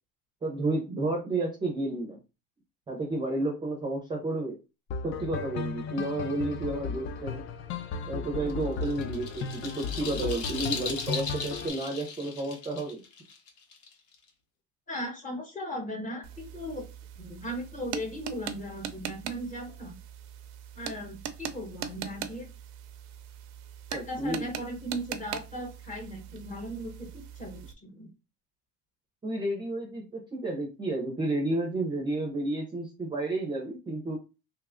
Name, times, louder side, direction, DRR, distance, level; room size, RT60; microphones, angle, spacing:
voice 1, 0.4-2.2 2.9-4.6 5.0-7.4 8.1-13.0 23.9-24.5 29.2-34.2, right 2 dB, 15° right, 0 dB, 0.6 m, -31 dB
sound 1, 4.9-11.7, left 5 dB, 45° left, 0.4 m, -35 dB
sound 2, 8.5-14.3, left 4 dB, 75° left, 1.0 m, -38 dB
voice 2, 14.9-16.8 17.2-20.0 20.7-22.5 23.9-28.1, equal, 25° left, 2 dB, 1.0 m, -37 dB
sound 3, 16.2-27.7, right 9 dB, 70° right, 0.5 m, -41 dB
2.9 x 2.3 x 3.5 m, 0.28 s
cardioid pair, 160°, 30 cm